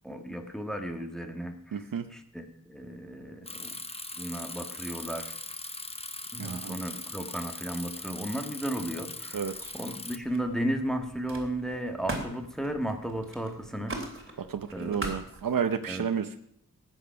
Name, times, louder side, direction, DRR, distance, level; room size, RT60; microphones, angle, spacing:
voice 1, 0.0-3.7 4.2-5.3 6.3-14.4 14.7-15.0 15.9-16.0, right 1 dB, ahead, 4 dB, 1.6 m, -35 dB
voice 2, 1.7-2.0 6.4-6.8 9.3-9.7 14.5-16.4, right 7 dB, 80° right, 8 dB, 0.8 m, -31 dB
Bicycle, 3.5-10.2, left 2 dB, 20° left, 0.9 m, -40 dB
Camera, 9.6-9.9 10.2-15.7, right 2 dB, 40° right, 3.1 m, -41 dB
19.0 x 9.1 x 5.8 m, 0.69 s
wide cardioid pair, 95°, 33 cm